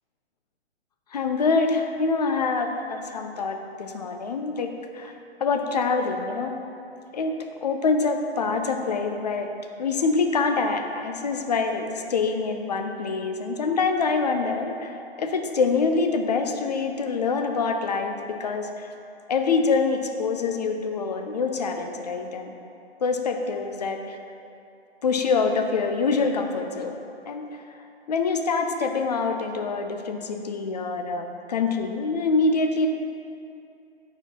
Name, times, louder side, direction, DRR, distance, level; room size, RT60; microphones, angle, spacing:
voice 1, 1.1-4.7 4.9-5.1 5.4-6.5 7.1-7.3 7.6-9.5 9.8-18.9 19.3-22.5 23.0-24.2 25.0-27.0 27.3-27.4 28.1-32.9, left 4 dB, 40° left, 5 dB, 0.4 m, -25 dB
4.7 x 4.4 x 5.3 m, 2.7 s
hypercardioid pair, 160°, 33 cm